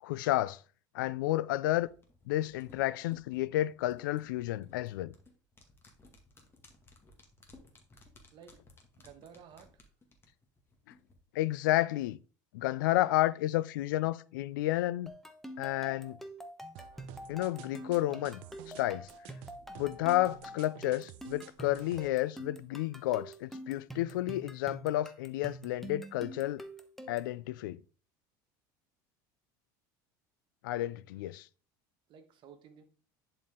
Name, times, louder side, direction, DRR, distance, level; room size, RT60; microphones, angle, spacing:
voice 1, 0.0-0.6 0.9-1.9 2.3-5.1 11.3-12.2 12.5-15.1 15.6-16.2 17.3-18.4 18.7-19.1 19.8-26.6 27.1-27.8 30.6-31.5, left 15 dB, 90° left, 0.4 m, -31 dB
sound 1, 1.8-11.2 11.5-11.6, left 2 dB, 20° left, 2.0 m, -60 dB
voice 2, 9.0-9.8 32.1-32.8, right 7 dB, 50° right, 1.5 m, -54 dB
sound 2, 15.1-27.4, right 1 dB, ahead, 1.1 m, -46 dB
sound 3, 16.8-22.1, right 15 dB, 70° right, 0.6 m, -52 dB
10.5 x 4.5 x 3.7 m
supercardioid pair, 110°, 10 cm